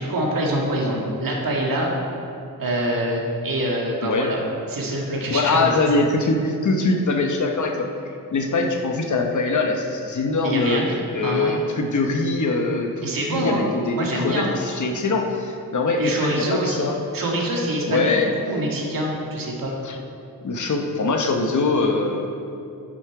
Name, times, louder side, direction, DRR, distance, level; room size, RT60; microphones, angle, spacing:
voice 1, 0.0-1.9 2.6-4.4 4.7-5.7 10.4-10.9 11.2-11.6 13.0-13.6 13.9-14.5 16.0-16.9 17.1-19.7, right 1 dB, 65° right, -2 dB, 1.9 m, -25 dB
voice 2, 4.0-4.3 5.3-7.9 8.3-10.8 11.1-17.0 17.9-18.3 19.8-20.0 20.4-22.3, left 3 dB, 55° left, 3 dB, 0.9 m, -22 dB
10.0 x 7.2 x 4.8 m, 2.6 s
wide cardioid pair, 170°, 36 cm